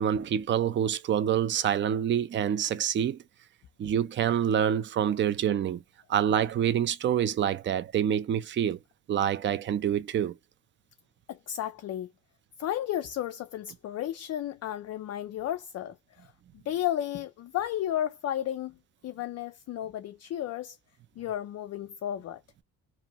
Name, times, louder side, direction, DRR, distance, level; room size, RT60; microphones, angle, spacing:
voice 1, 0.0-3.2 3.8-5.8 6.1-8.8 9.1-10.4, right 9 dB, 35° right, 0.4 m, -26 dB
voice 2, 11.3-12.1 12.6-16.3 16.7-18.8 19.0-20.8 21.2-22.4, left 11 dB, 45° left, 0.4 m, -33 dB
2.7 x 2.2 x 2.8 m
cardioid pair, 110°, 36 cm